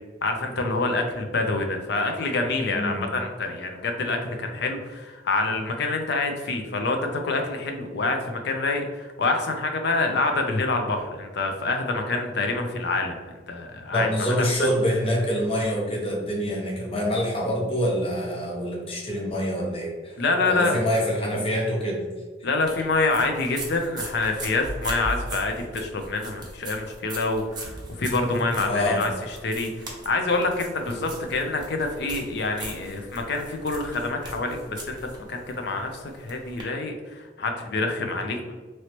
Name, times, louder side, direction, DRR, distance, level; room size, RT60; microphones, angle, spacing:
voice 1, 0.2-14.4 20.2-20.8 22.4-29.7 30.1-38.5, left 3 dB, 65° left, 4 dB, 0.5 m, -26 dB
voice 2, 2.7-3.0 13.9-20.2 20.5-22.0 28.6-29.0, equal, 30° left, -1 dB, 0.7 m, -26 dB
sound 1, 22.7-36.6, right 2 dB, 25° right, 0.7 m, -39 dB
3.0 x 2.9 x 2.9 m, 1.4 s
head